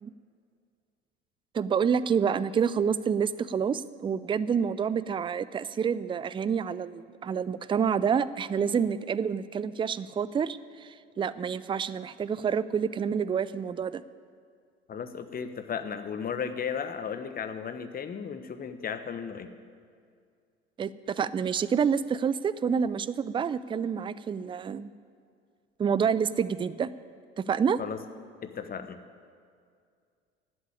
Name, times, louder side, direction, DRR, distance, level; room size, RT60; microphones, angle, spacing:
voice 1, 1.5-14.0 20.8-24.9 25.8-26.9 27.4-27.8, right 7 dB, 15° right, 16 dB, 0.4 m, -28 dB
voice 2, 14.9-19.5 27.8-28.0 28.4-29.0, left 7 dB, 30° left, 9 dB, 1.2 m, -35 dB
12.5 x 8.1 x 9.9 m, 2.2 s
figure-of-eight pair, 65°, 30 cm